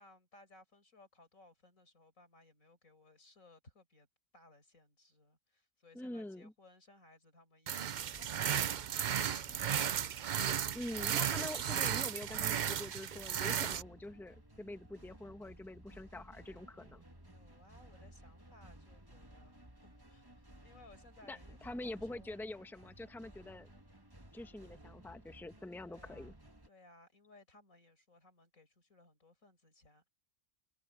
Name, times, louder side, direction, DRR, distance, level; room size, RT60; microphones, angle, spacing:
voice 1, 0.0-4.1 4.3-9.9 17.3-22.5 25.8-26.4 26.6-30.1, left 2 dB, 85° left, 5.7 m, -63 dB
voice 2, 5.9-6.5 10.7-17.0 21.3-23.7 24.3-26.3, left 1 dB, ahead, 1.4 m, -45 dB
sound 1, 7.7-13.8, right 9 dB, 60° right, 0.5 m, -35 dB
sound 2, 7.9-26.7, right 1 dB, 15° right, 2.4 m, -57 dB
omnidirectional pair, 1.4 m